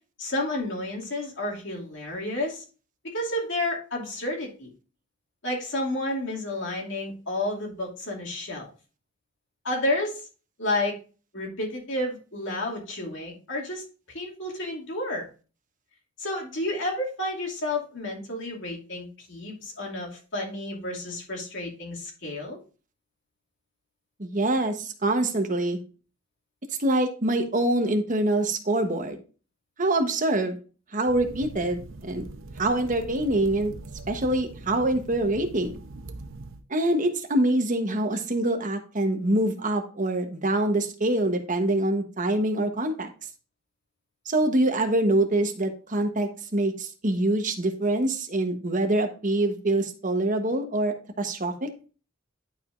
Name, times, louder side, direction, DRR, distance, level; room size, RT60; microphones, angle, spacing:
voice 1, 0.2-2.6 3.1-4.7 5.4-8.7 9.6-10.2 10.6-11.0 11.3-15.2 16.2-22.6, left 1 dB, 65° left, -1 dB, 2.6 m, -31 dB
voice 2, 24.2-25.8 26.8-29.2 29.8-30.6 30.9-32.2 32.6-33.7 34.1-35.7 36.7-43.1 44.3-51.7, right 1 dB, 40° right, 5 dB, 1.2 m, -25 dB
sound 1, 31.1-36.6, right 2 dB, 80° right, 0.8 m, -42 dB
11.5 x 4.9 x 2.6 m, 0.36 s
head